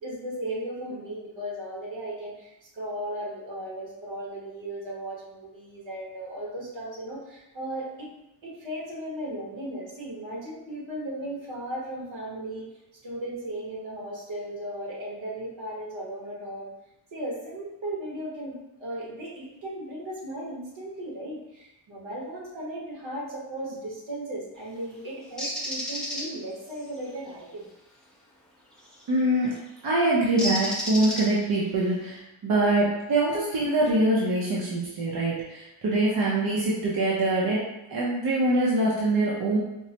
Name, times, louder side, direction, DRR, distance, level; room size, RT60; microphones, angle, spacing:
voice 1, 0.0-8.1 8.4-12.7 13.0-16.7 17.1-27.7, right 1 dB, 75° right, -4 dB, 1.3 m, -36 dB
Bird, 25.4-26.2 28.9-29.1 30.4-31.6, equal, ahead, 0.6 m, -31 dB
voice 2, 29.1-29.5 29.8-37.6 37.9-39.6, right 2 dB, 55° right, -5 dB, 0.7 m, -24 dB
4.6 x 2.1 x 2.8 m, 0.94 s
wide cardioid pair, 155°, 45 cm